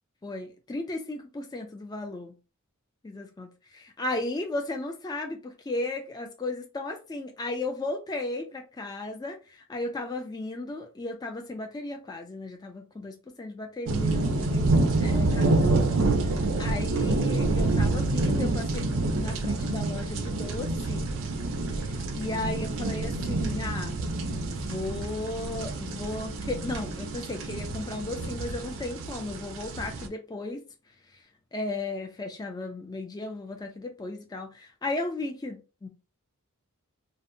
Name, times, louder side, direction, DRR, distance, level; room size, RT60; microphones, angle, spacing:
voice 1, 0.2-2.3 3.0-14.7 15.0-15.8 16.2-18.9 19.1-21.1 21.8-21.9 22.1-24.0 24.5-30.6 31.5-35.9, left 2 dB, 15° left, 0.3 m, -35 dB
sound 1, 13.9-30.1, right 2 dB, 60° right, 0.5 m, -27 dB
2.7 x 2.0 x 2.5 m
head